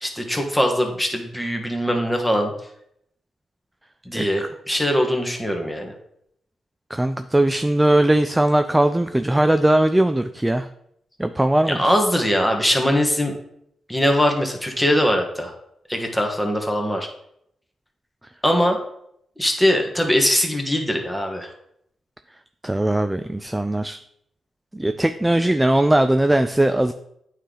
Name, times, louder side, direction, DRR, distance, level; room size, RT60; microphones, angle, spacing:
voice 1, 0.0-2.5 4.0-5.9 11.7-13.3 13.9-15.5 15.9-17.1 18.4-18.8 19.4-21.5, equal, 5° left, 2 dB, 1.4 m, -21 dB
voice 2, 4.1-4.5 6.9-10.7 11.2-11.9 22.6-24.0 24.7-26.9, right 1 dB, 10° right, 9 dB, 0.3 m, -19 dB
9.0 x 3.3 x 3.8 m, 0.74 s
cardioid pair, 70°, 0 cm